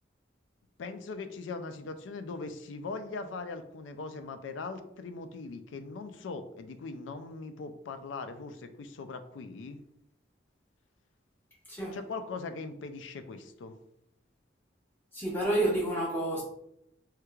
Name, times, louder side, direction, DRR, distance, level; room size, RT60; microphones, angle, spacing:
voice 1, 0.8-9.8 11.9-13.7, left 4 dB, 90° left, 0.4 m, -40 dB
voice 2, 15.1-16.4, right 1 dB, 10° left, 0.9 m, -29 dB
3.3 x 3.0 x 2.3 m
head